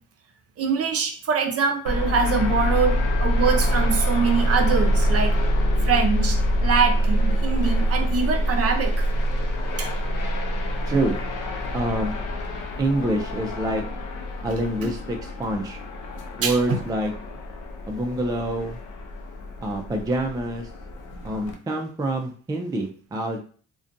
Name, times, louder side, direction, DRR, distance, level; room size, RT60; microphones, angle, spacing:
voice 1, 0.6-2.9 3.2-5.3 5.8-9.0 9.8-9.9 16.4-16.8, right 5 dB, 50° right, 5 dB, 0.6 m, -24 dB
sound 1, 1.9-21.5, equal, 85° left, 0.5 m, -25 dB
voice 2, 10.9-11.2 11.7-12.1 12.8-13.8 14.4-15.8 16.4-17.1 17.9-18.8 19.6-20.7 21.2-23.4, right 1 dB, 15° right, 3 dB, 0.3 m, -26 dB
2.5 x 2.2 x 2.5 m, 0.41 s
cardioid pair, 90°, 30 cm